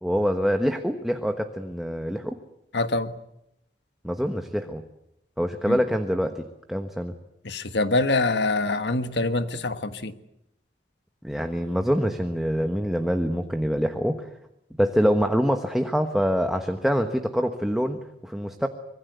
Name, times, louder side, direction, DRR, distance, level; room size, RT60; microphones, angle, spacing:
voice 1, 0.0-2.4 4.0-4.8 5.4-7.1 11.2-14.3 14.8-18.7, equal, ahead, 1.3 m, -25 dB
voice 2, 2.7-3.1 5.7-5.8 7.4-10.1, left 2 dB, 80° left, 1.5 m, -25 dB
25.5 x 22.0 x 8.1 m
head